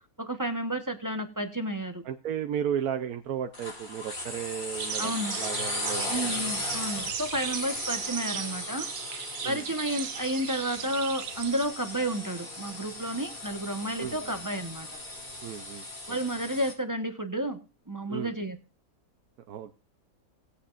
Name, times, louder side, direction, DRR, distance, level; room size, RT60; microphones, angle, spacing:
voice 1, 0.2-2.0 5.0-5.4 6.1-8.9 9.4-14.9 16.1-17.6 17.9-18.6, right 1 dB, 15° right, 6 dB, 1.0 m, -31 dB
voice 2, 2.0-6.2 6.9-7.0 9.4-9.6 14.0-14.3 15.4-16.2 18.1-18.4 19.5-19.7, right 9 dB, 85° right, 6 dB, 1.2 m, -34 dB
sound 1, 3.5-16.7, left 1 dB, 35° left, 2.3 m, -37 dB
sound 2, 4.8-11.6, right 9 dB, 60° right, 0.9 m, -37 dB
19.0 x 8.5 x 2.5 m, 0.32 s
omnidirectional pair, 1.5 m